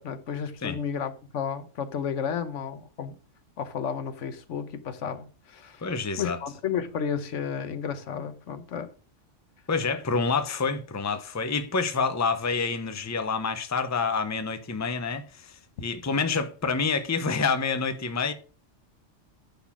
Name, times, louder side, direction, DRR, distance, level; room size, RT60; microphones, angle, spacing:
voice 1, 0.0-3.2 3.6-5.9 6.2-8.9, left 7 dB, 80° left, 1.2 m, -32 dB
voice 2, 5.8-6.4 9.7-18.3, left 4 dB, 15° left, 0.7 m, -28 dB
10.0 x 4.0 x 6.0 m
omnidirectional pair, 1.3 m